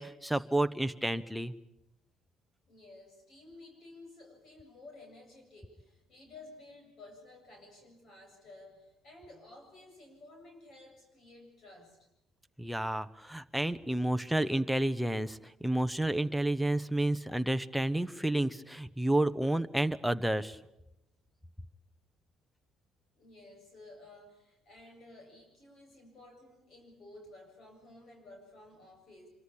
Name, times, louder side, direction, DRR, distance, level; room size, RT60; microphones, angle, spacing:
voice 1, 0.0-1.5 12.6-20.6, right 1 dB, ahead, 9 dB, 0.9 m, -30 dB
voice 2, 2.7-12.0 23.1-29.3, left 2 dB, 45° left, 2 dB, 7.5 m, -54 dB
26.0 x 24.5 x 8.7 m, 0.89 s
cardioid pair, 165°, 0 cm